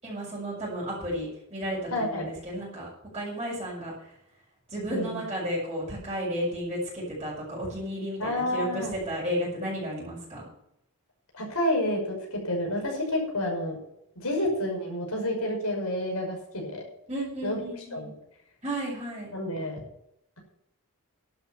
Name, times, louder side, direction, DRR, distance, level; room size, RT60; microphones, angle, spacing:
voice 1, 0.0-2.9 3.1-4.1 4.7-10.4 17.1-18.1 18.6-19.3, equal, 25° right, -9 dB, 6.4 m, -33 dB
voice 2, 1.9-2.3 4.9-5.2 8.2-8.9 11.3-13.7 14.2-16.8 17.4-17.6 17.9-18.1 19.3-19.8, left 1 dB, 85° left, 1 dB, 6.0 m, -29 dB
12.0 x 8.9 x 7.0 m, 0.78 s
head